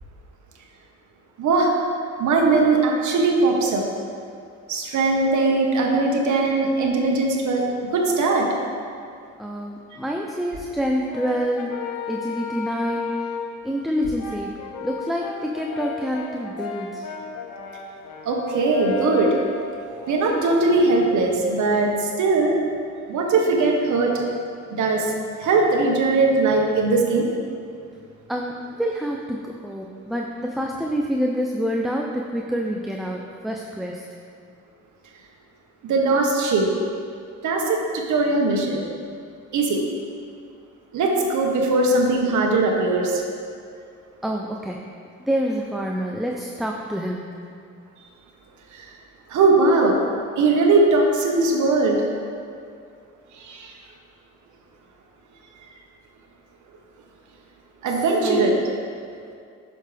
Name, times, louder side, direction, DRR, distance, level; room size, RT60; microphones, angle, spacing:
voice 1, 1.4-1.7 2.2-3.8 4.7-7.6 7.9-8.5 18.2-19.3 20.1-22.6 23.1-24.1 24.7-25.1 25.4-27.3 35.9-36.7 37.4-38.8 39.5-39.8 40.9-43.2 48.7-48.8 49.3-50.0 50.4-52.0 53.4-53.7 57.8-58.5, right 3 dB, 75° right, 0 dB, 1.4 m, -20 dB
voice 2, 9.4-11.7 12.1-13.3 13.6-17.1 28.3-34.0 44.2-44.8 45.3-47.4 57.9-58.5, equal, ahead, 0 dB, 0.6 m, -27 dB
Brass instrument, 11.1-13.6 14.2-21.1, left 6 dB, 85° left, 1.0 m, -34 dB
10.0 x 6.8 x 3.4 m, 2.3 s
cardioid pair, 90°, 30 cm